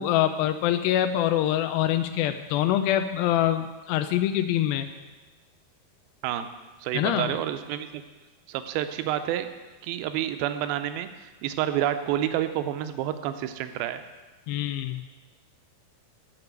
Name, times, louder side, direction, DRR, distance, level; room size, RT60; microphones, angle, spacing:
voice 1, 0.0-4.9 6.9-7.3 14.5-15.0, left 12 dB, 80° left, 8 dB, 2.2 m, -25 dB
voice 2, 6.8-8.0 8.5-9.5 9.8-14.0, right 11 dB, 80° right, 9 dB, 2.4 m, -29 dB
12.0 x 5.4 x 8.0 m, 1.3 s
omnidirectional pair, 4.5 m